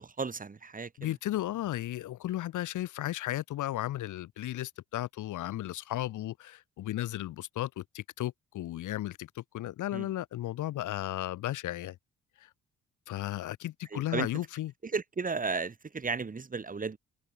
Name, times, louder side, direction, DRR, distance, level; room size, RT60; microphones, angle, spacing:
voice 1, 0.0-0.9 9.9-10.1 13.9-14.3 14.9-17.0, right 4 dB, 25° right, 1.9 m, -34 dB
voice 2, 1.0-12.0 12.4-12.5 13.1-14.7, left 14 dB, 80° left, 2.3 m, -35 dB
cardioid pair, 90°, 30 cm